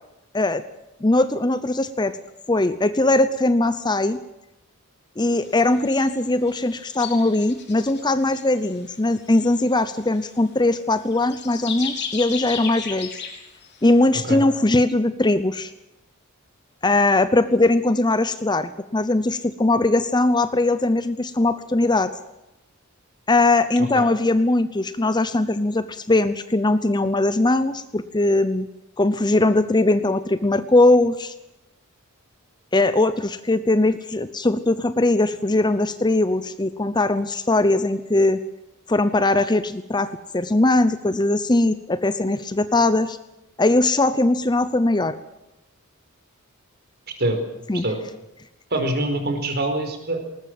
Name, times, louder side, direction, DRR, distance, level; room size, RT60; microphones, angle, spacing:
voice 1, 1.0-2.2 2.5-4.2 5.2-13.1 13.8-15.7 16.8-22.1 23.3-28.7 29.0-31.3 32.7-38.4 38.9-43.2 43.6-45.2 47.7-47.8, left 2 dB, 20° left, 13 dB, 0.7 m, -20 dB
sound 1, 5.3-5.5 5.8-6.2 6.5-8.7 9.1-10.2 11.1-13.8, left 6 dB, 50° left, 4.2 m, -34 dB
voice 2, 48.7-50.3, right 1 dB, 45° right, 6 dB, 4.7 m, -24 dB
20.0 x 20.0 x 7.8 m, 0.93 s
head